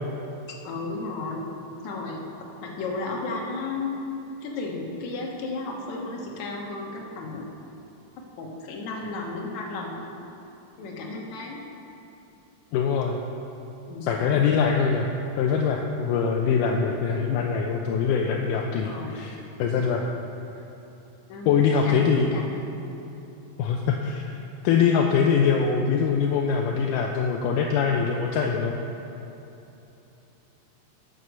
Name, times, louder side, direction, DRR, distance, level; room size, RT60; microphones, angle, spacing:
voice 1, 0.5-1.5 1.8-2.2 2.6-3.9 4.4-7.4 8.4-10.0 10.8-11.6 13.9-14.1 18.8-19.1 21.3-21.5 21.8-22.7, left 3 dB, 60° left, -1 dB, 2.4 m, -33 dB
voice 2, 12.7-13.2 14.0-15.1 15.4-20.0 21.5-22.4 23.6-24.3 24.6-28.8, left 6 dB, 80° left, 1 dB, 2.0 m, -23 dB
9.8 x 8.1 x 6.3 m, 3.0 s
omnidirectional pair, 4.1 m